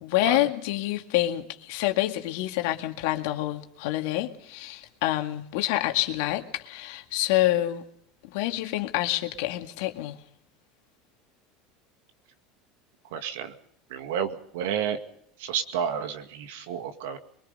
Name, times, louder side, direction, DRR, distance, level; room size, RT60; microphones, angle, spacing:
voice 1, 0.0-7.8 8.2-10.2, left 15 dB, 70° left, 2.0 m, -27 dB
voice 2, 13.1-13.5 13.9-15.0 15.4-17.2, right 8 dB, 75° right, 2.0 m, -30 dB
23.0 x 22.5 x 5.4 m
hypercardioid pair, 85°, 0 cm